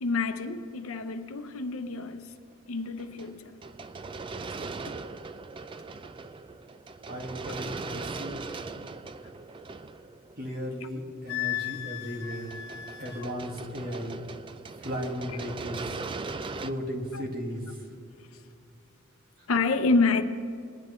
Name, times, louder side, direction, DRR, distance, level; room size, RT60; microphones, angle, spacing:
voice 1, 0.0-2.3 2.7-3.6 17.1-17.2 19.5-20.2, left 3 dB, 70° left, 0.7 m, -28 dB
sound 1, 3.0-10.9 12.3-16.7, right 4 dB, 25° right, 0.3 m, -39 dB
voice 2, 7.1-8.4 10.4-12.5 13.0-14.2 14.8-15.9 16.6-17.8, equal, 45° right, 1.9 m, -36 dB
Wind instrument woodwind instrument, 11.3-13.3, left 13 dB, 50° left, 1.0 m, -35 dB
20.0 x 10.5 x 3.2 m
head